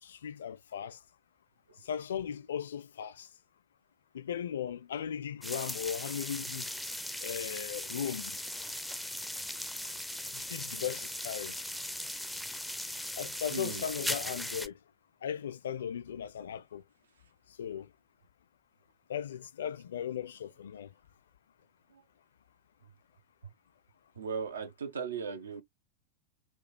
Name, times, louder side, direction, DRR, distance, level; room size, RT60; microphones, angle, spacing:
voice 1, 0.0-1.0 1.8-3.3 4.1-6.7 7.2-8.4 10.3-11.6 13.2-14.8 15.2-16.8 17.6-17.9 19.1-20.9, left 8 dB, 65° left, 0.4 m, -37 dB
sound 1, 5.4-14.7, left 1 dB, ahead, 0.5 m, -38 dB
voice 2, 13.5-13.9 24.2-25.6, right 6 dB, 70° right, 0.7 m, -37 dB
4.3 x 2.3 x 3.0 m
figure-of-eight pair, 90°, 0 cm